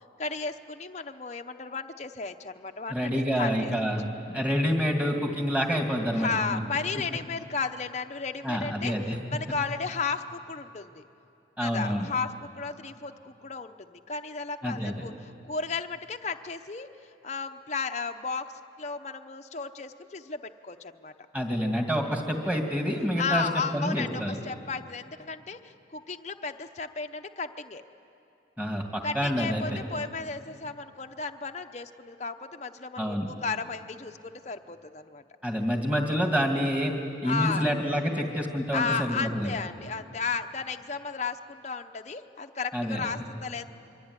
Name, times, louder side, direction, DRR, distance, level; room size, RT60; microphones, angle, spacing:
voice 1, 0.2-3.7 6.1-11.1 11.6-16.9 17.2-18.5 18.8-21.1 23.2-27.8 29.0-35.2 37.2-37.7 38.7-43.6, left 5 dB, 35° left, 6 dB, 0.8 m, -34 dB
voice 2, 2.9-4.0 4.3-6.6 8.4-9.2 11.6-12.1 14.6-15.0 21.3-24.4 28.6-29.8 33.0-33.3 35.4-36.9 37.2-39.5 42.7-43.1, equal, 5° right, 2 dB, 2.5 m, -27 dB
25.0 x 24.0 x 9.8 m, 2.7 s
head